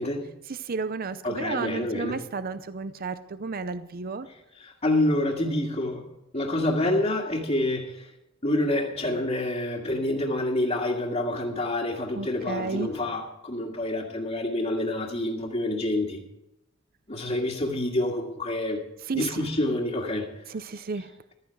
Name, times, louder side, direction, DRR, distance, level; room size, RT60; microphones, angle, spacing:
voice 1, 0.5-4.3 12.1-12.9 19.0-19.4 20.5-21.1, right 4 dB, 45° right, 12 dB, 0.6 m, -32 dB
voice 2, 1.2-2.2 4.6-6.1 6.3-8.1 8.4-16.2 17.1-18.8 19.1-20.3, left 1 dB, 35° left, -3 dB, 2.0 m, -27 dB
15.5 x 13.5 x 4.7 m, 0.91 s
head